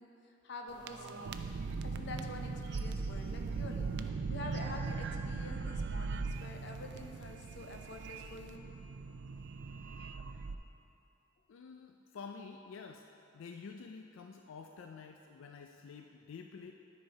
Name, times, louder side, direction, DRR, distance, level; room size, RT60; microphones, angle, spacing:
voice 1, 0.0-1.3 1.8-8.7, left 2 dB, 60° left, 2 dB, 0.7 m, -47 dB
sound 1, 0.7-10.5, right 4 dB, 60° right, 0.4 m, -39 dB
voice 2, 11.5-13.0 13.3-16.7, left 5 dB, 90° left, 4 dB, 0.4 m, -49 dB
10.5 x 4.5 x 4.6 m, 2.7 s
head